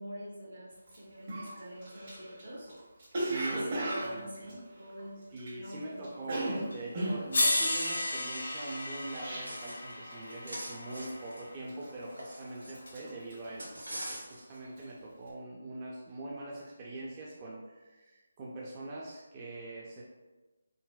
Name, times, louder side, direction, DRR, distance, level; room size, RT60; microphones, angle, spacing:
voice 1, 0.0-2.7 3.2-5.2 5.6-6.4, equal, 70° right, -4 dB, 1.0 m, -45 dB
Cough, 0.9-1.0 1.3-5.7 6.0-9.8 10.1-10.5 10.7-11.2 11.7-12.3 12.6-14.3 14.6-14.9, right 1 dB, 45° right, 0.8 m, -37 dB
voice 2, 3.1-4.3 5.3-20.0, right 2 dB, 25° right, -4 dB, 0.4 m, -42 dB
sound 1, 6.7-6.8 7.3-11.5 12.9-13.0, left 2 dB, 65° left, 0.5 m, -33 dB
sound 2, 8.8-10.0 10.2-13.0 13.6-14.6, right 1 dB, 90° right, 0.6 m, -44 dB
3.8 x 2.1 x 2.2 m, 1.2 s
figure-of-eight pair, 155°, 0 cm